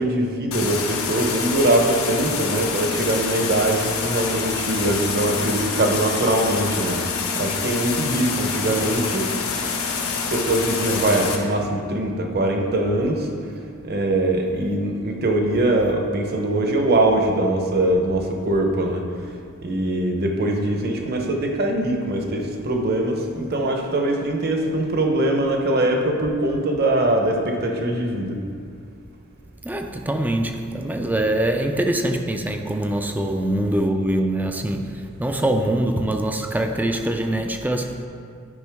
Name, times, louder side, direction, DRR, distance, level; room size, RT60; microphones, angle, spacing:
voice 1, 0.0-9.3 10.3-13.5 13.8-19.3 19.6-28.4, right 1 dB, 50° right, 0.9 m, -22 dB
sound 1, 0.5-11.4, left 5 dB, 75° left, 1.0 m, -26 dB
voice 2, 29.6-38.1, right 1 dB, 10° right, 0.4 m, -23 dB
10.5 x 5.3 x 3.5 m
head